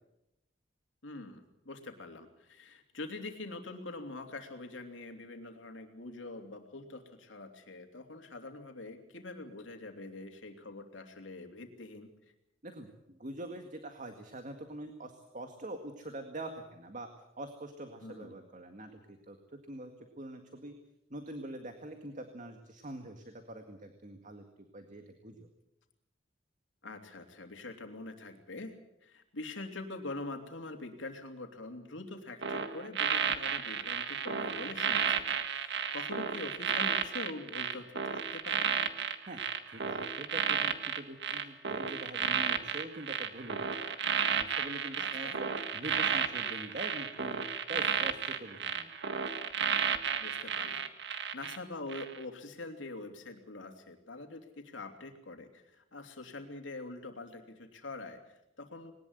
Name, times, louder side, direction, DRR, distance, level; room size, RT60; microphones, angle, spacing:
voice 1, 1.0-12.1 18.0-18.3 26.8-38.7 45.0-45.4 50.2-58.9, left 2 dB, 80° left, 5 dB, 3.1 m, -44 dB
voice 2, 12.6-17.1 17.4-19.4 19.7-20.8 21.1-25.5 39.3-43.9 44.3-45.5 45.7-48.9, right 1 dB, 45° right, 6 dB, 2.0 m, -44 dB
sound 1, 32.4-51.6 51.9-52.2, right 7 dB, 65° right, 1.7 m, -32 dB
21.0 x 19.5 x 8.1 m, 0.86 s
head